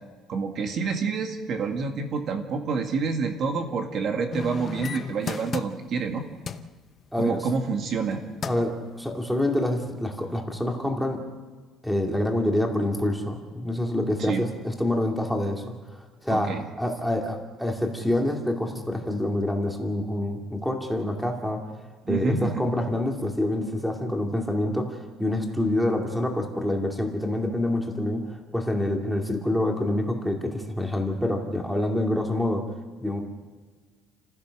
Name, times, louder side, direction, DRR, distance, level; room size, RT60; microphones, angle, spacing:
voice 1, 0.3-6.3 7.2-8.2 14.2-14.5 16.3-16.6 22.1-22.7, right 5 dB, 40° right, 4 dB, 2.0 m, -28 dB
sound 1, 4.3-6.1 6.5-6.7 8.0-8.1 8.4-8.8 9.3-9.4, left 5 dB, 30° left, 0.8 m, -34 dB
voice 2, 7.1-7.4 8.4-11.2 11.8-15.8 16.2-16.5 16.8-21.7 22.1-32.6 33.0-33.2, left 1 dB, ahead, 1 dB, 2.4 m, -26 dB
29.0 x 16.0 x 6.5 m, 1.5 s
cardioid pair, 175°, 0 cm